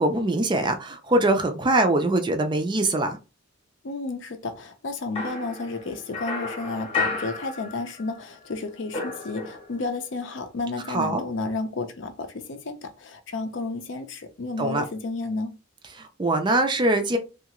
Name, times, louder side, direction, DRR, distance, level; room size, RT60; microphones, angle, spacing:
voice 1, 0.0-3.2 10.9-11.2 14.6-14.8 16.0-17.2, right 2 dB, 25° right, 0.4 m, -23 dB
voice 2, 3.8-15.6, left 3 dB, 60° left, 0.5 m, -32 dB
sound 1, 5.1-8.2 8.4-9.9, left 3 dB, 30° left, 0.8 m, -32 dB
2.8 x 2.4 x 2.9 m
head